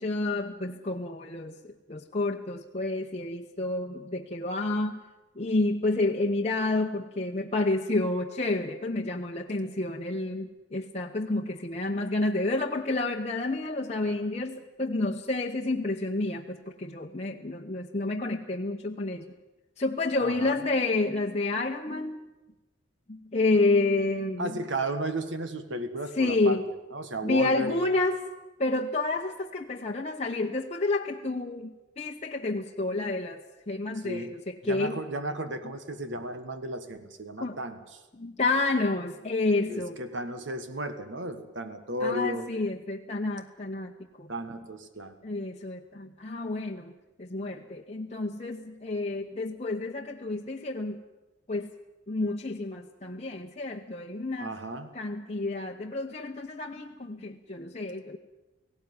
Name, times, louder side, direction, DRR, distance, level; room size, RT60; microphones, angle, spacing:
voice 1, 0.0-5.0 5.4-19.3 19.8-22.2 23.1-24.6 26.2-26.6 27.2-28.2 28.6-35.0 37.4-37.6 38.1-40.0 42.0-43.9 44.2-44.3 45.2-46.9 47.2-51.0 51.5-51.7 52.1-54.5 54.9-58.2, left 2 dB, 35° left, 0 dB, 0.9 m, -29 dB
voice 2, 20.2-20.6 24.4-26.6 26.9-27.9 34.0-34.3 34.6-38.0 39.7-42.7 44.3-45.1 54.4-54.9, right 1 dB, 70° right, 9 dB, 1.7 m, -34 dB
18.0 x 17.0 x 9.6 m, 1.1 s
head